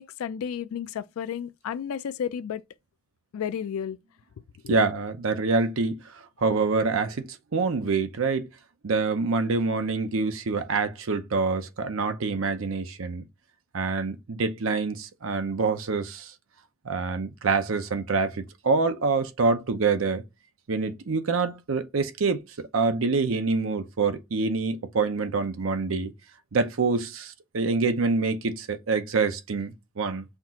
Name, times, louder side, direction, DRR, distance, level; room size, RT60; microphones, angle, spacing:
voice 1, 0.0-2.6 3.3-4.0 4.6-4.8, left 8 dB, 85° left, 0.3 m, -32 dB
voice 2, 4.7-8.5 8.8-13.3 13.7-16.3 16.8-20.2 20.7-26.1 26.5-30.2, right 4 dB, 70° right, 0.6 m, -26 dB
5.7 x 2.4 x 2.8 m
head